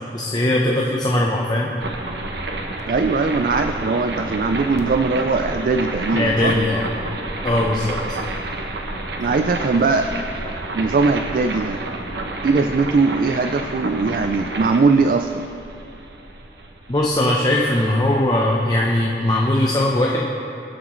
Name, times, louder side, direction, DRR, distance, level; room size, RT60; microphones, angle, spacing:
voice 1, 0.1-1.7 6.1-6.8 7.4-8.0 16.9-20.2, left 1 dB, 25° left, -2 dB, 0.7 m, -19 dB
sound 1, 1.8-18.7, right 2 dB, 70° right, 0.9 m, -30 dB
voice 2, 2.9-6.6 9.2-10.1 10.7-11.8 12.4-15.5, right 4 dB, 50° right, 7 dB, 0.4 m, -20 dB
22.5 x 7.8 x 3.2 m, 2.9 s
head